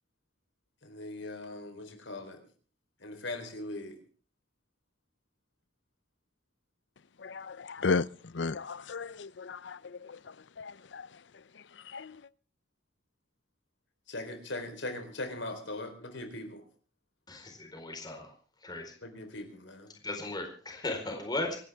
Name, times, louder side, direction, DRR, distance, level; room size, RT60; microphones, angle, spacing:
voice 1, 0.8-2.4 3.0-4.0 14.1-16.6 19.0-19.9, left 2 dB, 85° left, 4.0 m, -40 dB
voice 2, 7.2-10.2 10.6-11.1 11.9-12.2, left 4 dB, 70° left, 0.6 m, -34 dB
voice 3, 17.3-18.3 18.6-18.9 20.0-21.6, left 2 dB, 25° left, 4.4 m, -36 dB
26.5 x 12.0 x 3.6 m
head